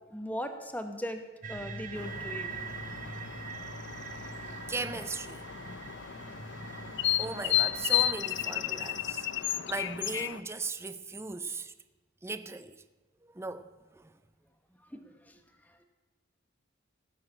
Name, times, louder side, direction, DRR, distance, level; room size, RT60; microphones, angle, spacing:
voice 1, 0.1-1.2 1.5-2.5 14.9-15.4, equal, 10° left, 1.0 m, -38 dB
sound 1, 1.4-9.0, right 5 dB, 40° right, 1.1 m, -44 dB
sound 2, 1.5-8.2, right 1 dB, 85° right, 2.0 m, -54 dB
sound 3, 1.9-10.4, left 12 dB, 60° left, 0.6 m, -33 dB
voice 2, 4.7-5.4 7.2-11.7 12.2-12.8 13.2-14.1, right 3 dB, 15° right, 0.5 m, -38 dB
17.0 x 6.4 x 8.7 m
head